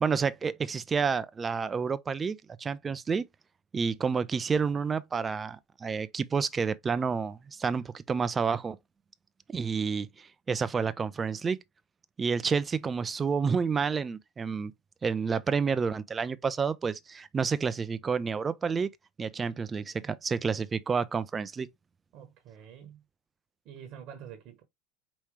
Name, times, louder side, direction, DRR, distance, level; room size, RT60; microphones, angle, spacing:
voice 1, 0.0-3.3 3.7-8.8 9.5-11.6 12.2-14.7 15.0-18.9 19.2-21.7, right 5 dB, 25° right, 0.5 m, -29 dB
voice 2, 22.1-23.0 23.6-24.6, right 8 dB, 50° right, 1.1 m, -47 dB
4.9 x 3.1 x 3.1 m
hypercardioid pair, 85°, 0 cm